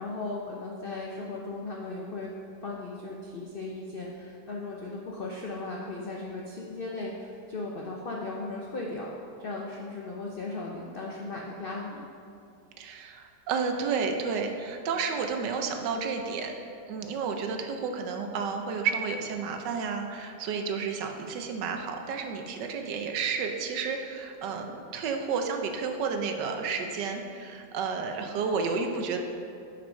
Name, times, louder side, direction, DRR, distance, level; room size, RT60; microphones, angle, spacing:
voice 1, 0.0-2.3 2.6-9.1 9.4-12.0, left 2 dB, 90° left, -2 dB, 0.4 m, -37 dB
voice 2, 12.8-16.5 16.9-29.2, right 5 dB, 75° right, 4 dB, 1.3 m, -31 dB
6.0 x 5.9 x 5.3 m, 2.5 s
omnidirectional pair, 1.9 m